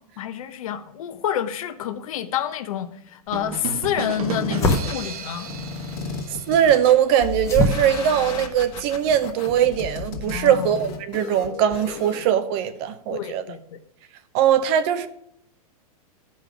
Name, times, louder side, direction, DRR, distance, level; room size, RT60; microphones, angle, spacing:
voice 1, 0.2-5.5 10.2-10.7 13.1-13.8, left 10 dB, 65° left, 1.0 m, -28 dB
sound 1, 3.3-9.6, left 1 dB, 15° left, 1.0 m, -29 dB
sound 2, 3.3-7.1, right 6 dB, 80° right, 1.1 m, -33 dB
sound 3, 4.2-12.2, left 5 dB, 45° left, 1.6 m, -34 dB
voice 2, 6.5-13.4 14.3-15.1, right 9 dB, 45° right, 0.8 m, -20 dB
12.5 x 5.4 x 5.0 m
supercardioid pair, 150°, 19 cm